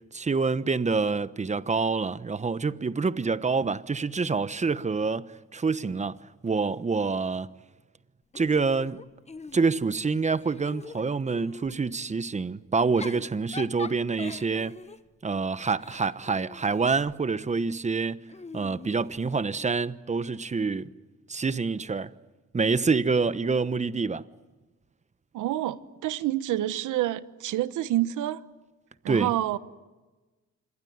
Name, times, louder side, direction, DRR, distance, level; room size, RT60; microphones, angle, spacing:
voice 1, 0.0-7.5 8.3-9.0 9.5-14.8 15.2-18.2 18.5-20.9 21.3-22.1 22.5-24.2 29.1-29.3, right 4 dB, 25° right, 1.0 m, -27 dB
Giggle / Chuckle chortle, 8.3-10.0 10.4-11.8 12.7-17.2 18.3-19.7, left 4 dB, 20° left, 1.2 m, -44 dB
voice 2, 25.3-28.4 29.0-29.6, right 13 dB, 85° right, 1.2 m, -28 dB
27.0 x 22.0 x 9.5 m
cardioid pair, 90°, 30 cm